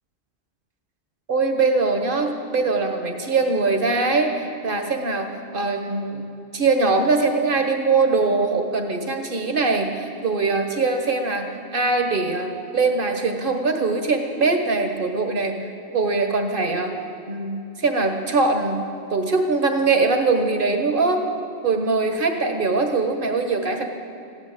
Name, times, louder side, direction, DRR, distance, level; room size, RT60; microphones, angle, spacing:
voice 1, 1.3-6.2 6.5-16.9 17.3-18.8 19.1-21.2 21.6-23.8, right 3 dB, 50° right, 4 dB, 1.6 m, -22 dB
16.0 x 11.0 x 7.9 m, 2.6 s
omnidirectional pair, 1.2 m